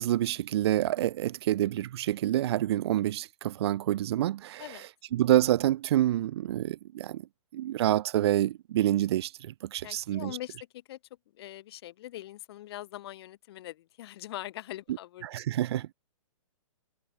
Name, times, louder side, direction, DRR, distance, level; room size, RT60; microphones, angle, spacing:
voice 1, 0.0-4.7 5.1-7.2 7.5-10.4 15.2-15.9, right 13 dB, 45° right, 0.4 m, -27 dB
voice 2, 9.8-11.0 11.3-15.3, left 14 dB, 45° left, 2.0 m, -42 dB
hypercardioid pair, 150°, 18 cm